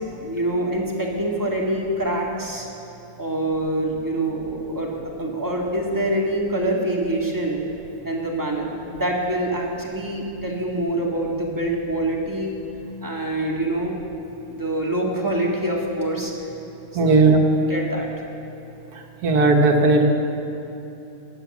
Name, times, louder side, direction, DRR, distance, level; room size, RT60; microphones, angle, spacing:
voice 1, 0.2-2.7 3.2-7.6 8.0-12.5 13.0-13.9 14.5-16.3 17.0-17.2 17.7-18.1, right 1 dB, 15° right, -2 dB, 1.8 m, -25 dB
voice 2, 17.0-17.4 19.2-20.1, right 3 dB, 80° right, 3 dB, 1.7 m, -16 dB
14.5 x 9.8 x 7.2 m, 2.9 s
omnidirectional pair, 1.6 m